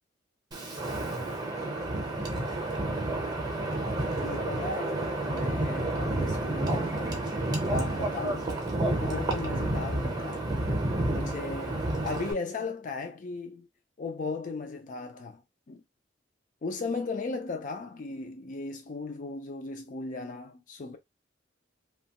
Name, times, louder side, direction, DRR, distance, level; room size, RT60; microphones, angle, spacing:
Wind, 0.5-12.3, right 1 dB, 20° right, 0.7 m, -30 dB
voice 1, 4.2-7.2 7.6-10.5 11.1-13.7 14.0-15.4 15.7-15.8 16.6-21.0, left 3 dB, 40° left, 0.4 m, -36 dB
2.9 x 2.3 x 2.8 m
head